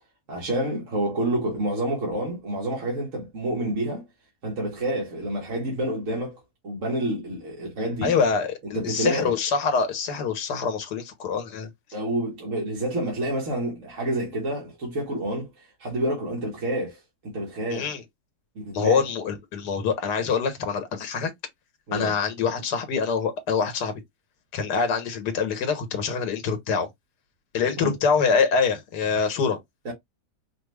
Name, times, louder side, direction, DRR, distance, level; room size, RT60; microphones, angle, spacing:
voice 1, 0.3-4.1 4.4-8.2 8.7-9.3 11.9-17.9 18.5-19.0 21.9-22.1 27.8-27.9 29.8-29.9, right 1 dB, 55° right, 1.7 m, -28 dB
voice 2, 8.0-11.7 17.7-18.0 18.7-21.3 21.9-24.0 24.5-26.9 27.5-29.6, left 5 dB, 90° left, 1.6 m, -25 dB
4.8 x 2.4 x 3.3 m
omnidirectional pair, 1.7 m